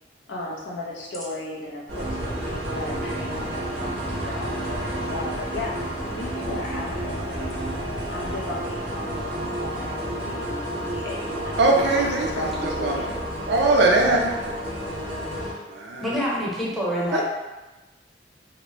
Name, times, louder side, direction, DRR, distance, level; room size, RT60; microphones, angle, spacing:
voice 1, 0.3-5.8 6.2-7.7 8.1-12.0 12.3-13.1, left 2 dB, 80° left, -4 dB, 0.7 m, -36 dB
sound 1, 1.9-15.5, right 1 dB, 85° right, 1.1 m, -30 dB
voice 2, 11.6-12.4 12.8-13.0 13.5-14.3 15.7-16.2 17.1-17.2, right 2 dB, 65° right, 0 dB, 0.5 m, -20 dB
voice 3, 16.0-17.2, equal, ahead, -7 dB, 0.7 m, -26 dB
3.0 x 2.0 x 2.9 m, 1.1 s
head